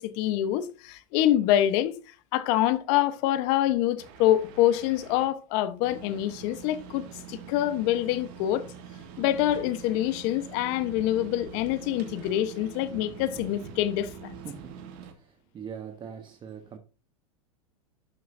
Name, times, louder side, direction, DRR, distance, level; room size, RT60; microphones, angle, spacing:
voice 1, 0.0-2.0 2.3-8.6 9.2-14.3, left 13 dB, 55° left, 1.1 m, -26 dB
sound 1, 4.0-5.3 5.8-15.1, right 7 dB, 55° right, 1.9 m, -44 dB
voice 2, 14.4-16.8, right 7 dB, 25° right, 1.1 m, -42 dB
12.0 x 6.2 x 2.7 m
hypercardioid pair, 115°, 17 cm